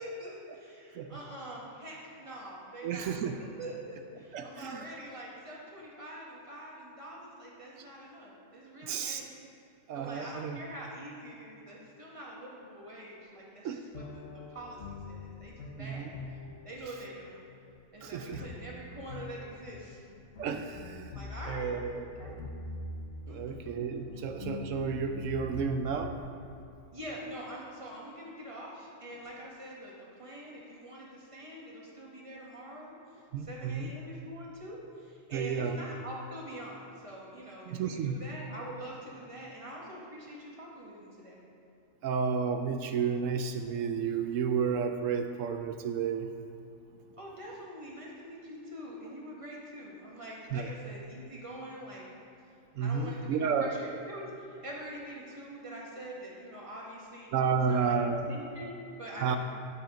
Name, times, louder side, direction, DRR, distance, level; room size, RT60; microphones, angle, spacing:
voice 1, 0.0-9.3 9.9-16.1 16.6-17.4 17.9-20.0 21.1-21.7 22.0-22.3 23.3-23.6 26.9-41.4 47.2-52.0 52.8-57.3 57.7-58.0 58.3-59.4, right 1 dB, 25° right, -4 dB, 1.9 m, -45 dB
voice 2, 2.8-3.3 4.3-4.8 8.8-9.2 9.9-10.6 13.6-13.8 15.8-16.1 18.0-18.4 20.4-21.1 21.5-22.4 23.3-26.2 33.3-33.9 35.3-35.8 37.7-38.2 42.0-46.3 50.5-50.7 52.8-53.7 57.3-58.3 59.2-59.4, right 6 dB, 85° right, 7 dB, 1.0 m, -31 dB
sound 1, 13.9-26.4, left 2 dB, 65° left, 1.4 m, -44 dB
10.0 x 7.7 x 5.1 m, 2.8 s
omnidirectional pair, 1.3 m